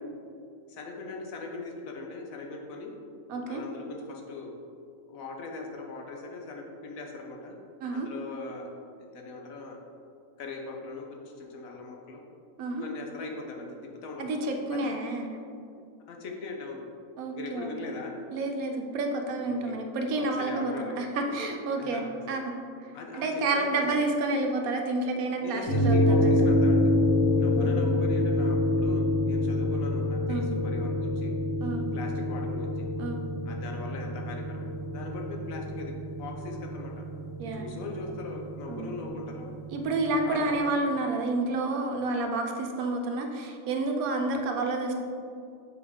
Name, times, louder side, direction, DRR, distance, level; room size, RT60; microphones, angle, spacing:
voice 1, 0.7-2.9 3.5-4.5 5.1-7.6 7.9-8.7 9.0-9.8 10.4-12.2 12.7-13.8 14.0-14.4 14.7-14.9 16.1-16.8 17.3-18.1 19.4-19.7 20.1-21.0 21.8-22.4 22.9-23.9 25.4-26.9 27.4-31.3 31.9-32.9 33.5-37.0 37.5-39.5 40.2-40.5, left 3 dB, 75° left, 1 dB, 1.2 m, -40 dB
voice 2, 3.3-3.6 7.8-8.1 12.6-12.8 14.2-15.3 17.2-17.9 18.3-22.6 23.1-26.5 27.5-28.0 30.3-30.5 31.6-31.9 33.0-33.2 37.4-37.7 38.7-38.9 39.7-44.9, right 2 dB, 80° right, 3 dB, 1.2 m, -30 dB
sound 1, 25.7-40.2, left 1 dB, 40° left, 1.4 m, -27 dB
7.0 x 4.6 x 3.6 m, 2.4 s
omnidirectional pair, 1.5 m